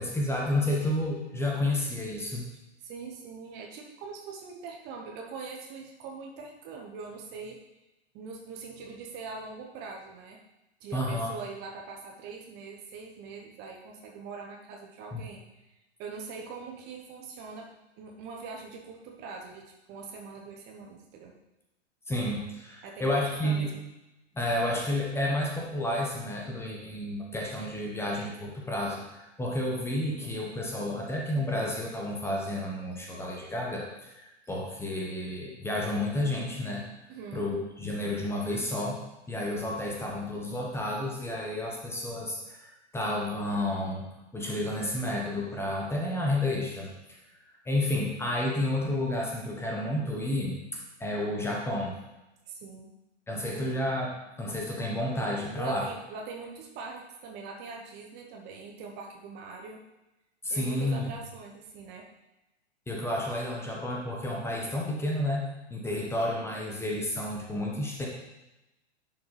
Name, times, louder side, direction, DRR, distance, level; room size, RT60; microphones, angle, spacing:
voice 1, 0.0-2.4 10.9-11.3 15.1-15.2 22.1-23.7 24.3-36.8 37.3-39.0 39.3-44.1 44.3-46.9 47.6-50.6 51.0-51.9 53.3-54.1 54.4-55.9 60.4-61.1 62.9-65.4 65.7-68.1, left 1 dB, 5° left, -2 dB, 1.1 m, -31 dB
voice 2, 2.8-7.6 8.1-10.4 10.8-15.7 16.0-17.7 18.0-21.3 22.8-23.1 23.4-23.7 37.1-37.4 52.5-52.9 53.5-53.6 55.6-59.8 60.5-62.1, right 4 dB, 30° right, 0 dB, 1.0 m, -42 dB
10.5 x 4.8 x 3.3 m, 0.96 s
figure-of-eight pair, 105°, 35 cm